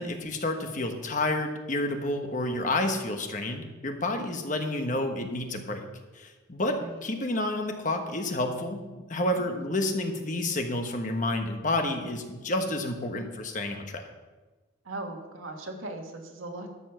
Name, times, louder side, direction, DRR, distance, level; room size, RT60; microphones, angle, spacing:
voice 1, 0.0-5.9 6.1-8.8 9.1-14.0, left 1 dB, 40° left, 5 dB, 1.2 m, -30 dB
voice 2, 6.7-7.0 9.4-9.6 14.8-16.7, right 2 dB, 85° right, 1 dB, 1.7 m, -39 dB
12.5 x 7.1 x 5.7 m, 1.2 s
head